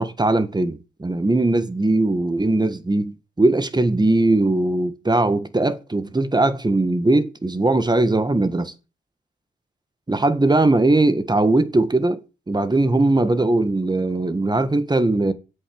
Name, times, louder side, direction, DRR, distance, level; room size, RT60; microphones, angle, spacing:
voice 1, 0.0-8.7 10.1-12.2 12.5-15.3, right 2 dB, 20° right, 1.7 m, -20 dB
10.5 x 8.3 x 7.8 m
cardioid pair, 70°, 20 cm